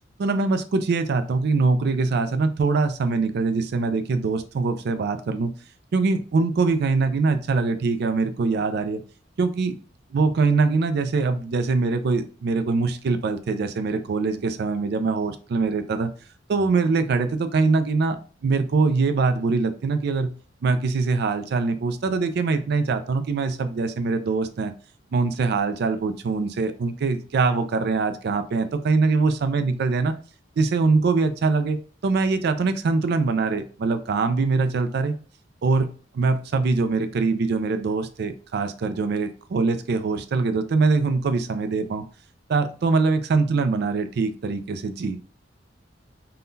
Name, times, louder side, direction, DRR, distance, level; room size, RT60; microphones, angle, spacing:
voice 1, 0.2-5.5 5.9-9.0 9.4-9.7 10.1-16.1 16.5-18.2 18.4-20.3 20.6-24.7 25.1-30.1 30.6-31.8 32.0-35.1 35.6-35.9 36.1-42.0 42.5-45.3, right 4 dB, 55° right, 10 dB, 0.4 m, -23 dB
3.6 x 2.2 x 2.6 m, 0.39 s
head